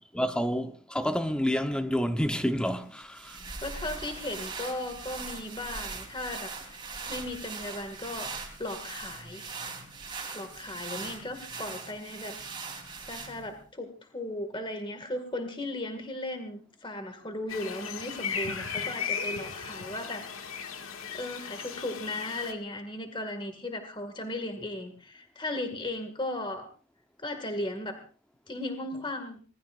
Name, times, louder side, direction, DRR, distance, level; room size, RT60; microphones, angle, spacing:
voice 1, 0.0-3.4, equal, 5° left, 0.9 m, -29 dB
walking cloth foley, 3.0-13.6, right 4 dB, 20° right, 3.6 m, -40 dB
voice 2, 3.6-6.8 7.1-8.3 8.6-9.5 10.3-12.4 13.1-20.2 21.1-26.7 27.2-28.0 28.5-29.4, left 1 dB, 25° left, 2.1 m, -36 dB
sound 1, 17.5-22.5, left 6 dB, 85° left, 2.0 m, -36 dB
25.5 x 19.5 x 2.5 m
head